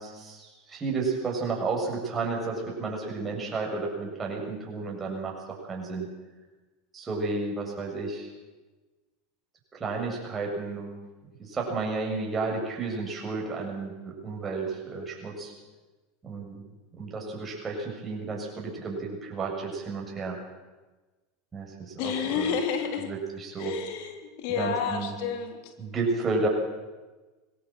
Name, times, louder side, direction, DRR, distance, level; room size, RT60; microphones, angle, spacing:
voice 1, 0.0-6.1 6.9-8.3 9.7-10.9 11.4-15.5 16.2-16.6 16.9-20.4 21.5-22.6 23.0-23.7 24.5-25.1 25.8-26.5, right 3 dB, 25° right, -1 dB, 7.1 m, -32 dB
voice 2, 22.0-23.1 23.6-25.7, left 7 dB, 65° left, 6 dB, 3.3 m, -30 dB
20.5 x 16.5 x 7.7 m, 1.2 s
hypercardioid pair, 105°, 0 cm